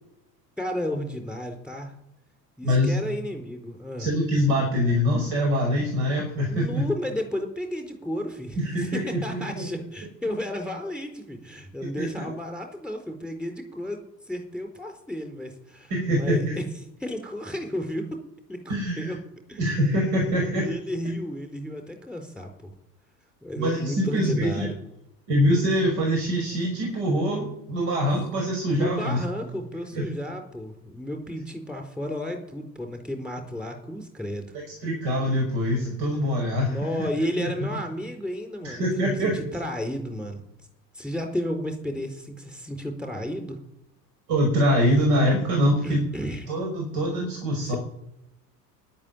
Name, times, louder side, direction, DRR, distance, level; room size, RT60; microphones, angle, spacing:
voice 1, 0.6-1.9 2.6-4.1 6.5-16.7 17.0-18.2 18.5-19.2 19.5-19.6 20.6-22.7 23.4-24.8 28.7-34.5 36.5-40.4 40.9-43.6 45.8-46.5, left 1 dB, ahead, 5 dB, 4.6 m, -33 dB
voice 2, 2.6-2.9 4.0-6.7 8.6-9.7 12.0-12.1 15.9-16.6 18.7-19.2 19.6-20.7 23.6-24.7 25.3-29.2 29.9-30.1 34.5-37.5 38.6-39.4 44.3-46.0 46.5-47.8, equal, 55° right, 2 dB, 5.8 m, -24 dB
12.5 x 11.0 x 9.4 m, 0.84 s
figure-of-eight pair, 70°, 50 cm